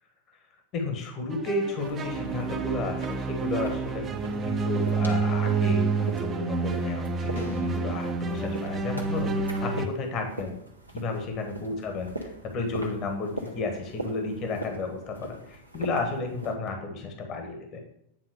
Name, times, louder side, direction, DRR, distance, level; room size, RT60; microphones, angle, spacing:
voice 1, 0.7-4.0 4.4-9.3 9.6-10.5 10.9-17.8, left 3 dB, 35° left, 4 dB, 1.4 m, -32 dB
sound 1, 1.3-9.9, right 4 dB, 20° right, 0.8 m, -28 dB
sound 2, 1.8-16.5, right 1 dB, 90° right, 1.2 m, -42 dB
sound 3, 7.3-7.9, left 9 dB, 65° left, 1.0 m, -41 dB
8.8 x 3.8 x 6.5 m, 0.74 s
figure-of-eight pair, 90°, 0 cm